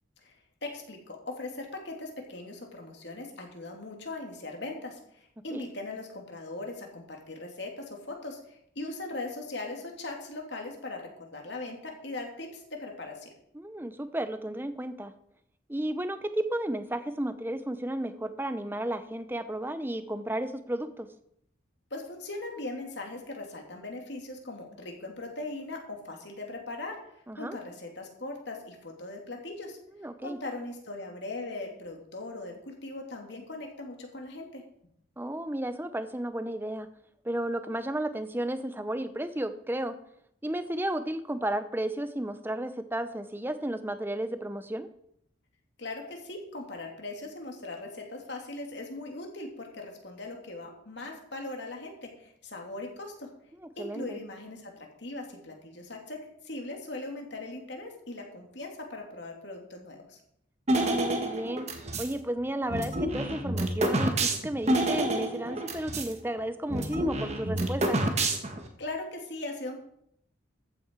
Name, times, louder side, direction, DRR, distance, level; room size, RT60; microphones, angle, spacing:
voice 1, 0.6-13.3 21.9-27.0 27.4-29.8 30.2-34.6 45.8-53.3 53.8-60.2 68.8-69.8, left 2 dB, 60° left, 2 dB, 2.7 m, -39 dB
voice 2, 13.5-15.1 15.7-21.1 27.3-27.6 30.0-30.4 35.2-36.9 37.2-40.0 40.4-44.9 53.6-54.2 60.7-61.7 62.0-68.0, right 1 dB, 10° right, 10 dB, 0.7 m, -33 dB
sound 1, 60.7-62.1 62.7-66.1 66.4-66.5 66.7-68.7, right 1 dB, 35° right, 1.5 m, -28 dB
14.0 x 8.9 x 4.6 m, 0.73 s
head